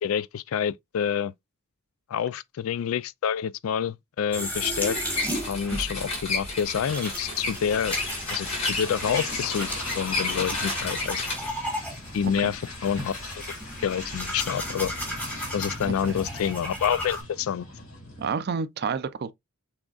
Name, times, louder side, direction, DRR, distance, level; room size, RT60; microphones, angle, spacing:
voice 1, 0.0-1.3 2.1-5.0 5.5-8.0 8.3-9.7 9.9-11.2 12.1-13.4 13.8-14.9 15.5-17.7, left 8 dB, 70° left, 0.3 m, -28 dB
sound 1, 4.3-17.2, equal, 10° left, 1.6 m, -35 dB
sound 2, 4.8-11.5, left 3 dB, 30° left, 2.9 m, -32 dB
sound 3, 6.8-18.3, left 2 dB, 90° left, 2.5 m, -39 dB
voice 2, 15.9-16.2 18.2-19.3, right 5 dB, 50° right, 0.4 m, -30 dB
6.2 x 3.5 x 2.3 m
head